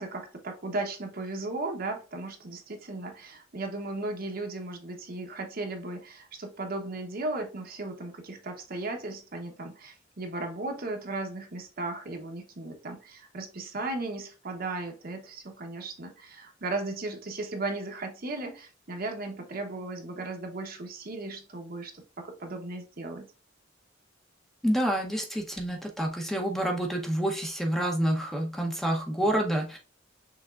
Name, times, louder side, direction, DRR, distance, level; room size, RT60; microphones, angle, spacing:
voice 1, 0.0-23.3, right 2 dB, 50° right, 4 dB, 0.9 m, -36 dB
voice 2, 24.6-29.8, right 1 dB, ahead, 1 dB, 0.8 m, -28 dB
5.9 x 3.5 x 2.4 m, 0.33 s
head